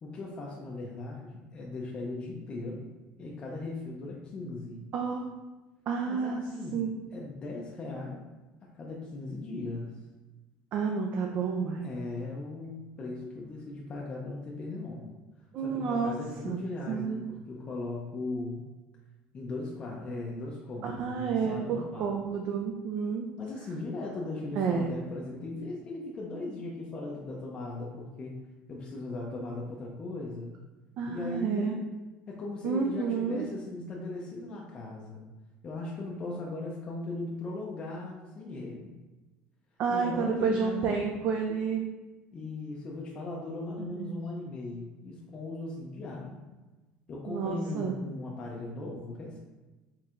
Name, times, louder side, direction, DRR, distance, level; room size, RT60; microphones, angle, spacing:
voice 1, 0.0-2.9 3.2-4.8 6.1-6.8 7.1-8.2 8.6-9.9 11.8-15.1 15.6-18.6 19.3-22.1 23.4-28.4 28.7-30.6 31.1-31.9 32.3-35.2 35.6-38.9 39.9-41.0 42.3-46.4 47.1-49.4, left 2 dB, 30° left, -3 dB, 0.5 m, -38 dB
voice 2, 4.9-5.3 5.9-6.4 6.7-6.9 10.7-11.9 15.5-16.2 16.4-17.2 20.8-23.3 24.6-24.9 31.0-31.8 32.6-33.5 39.8-41.8 43.8-44.1 47.3-47.9, right 6 dB, 45° right, 1 dB, 0.4 m, -30 dB
4.3 x 3.2 x 2.4 m, 1.2 s
cardioid pair, 145°, 4 cm